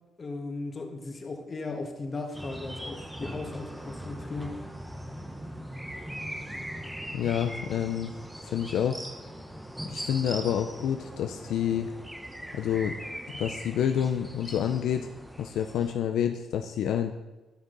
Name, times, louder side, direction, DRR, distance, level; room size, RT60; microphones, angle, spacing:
voice 1, 0.2-4.5 9.9-10.0, left 3 dB, 35° left, 3 dB, 1.6 m, -37 dB
sound 1, 2.3-15.9, equal, 5° right, 0.9 m, -40 dB
voice 2, 7.1-8.1 8.4-9.0 9.9-11.9 12.5-12.9 13.4-15.1 15.4-17.1, left 9 dB, 80° left, 5 dB, 0.5 m, -28 dB
13.0 x 6.3 x 4.0 m, 1.1 s
cardioid pair, 90°, 0 cm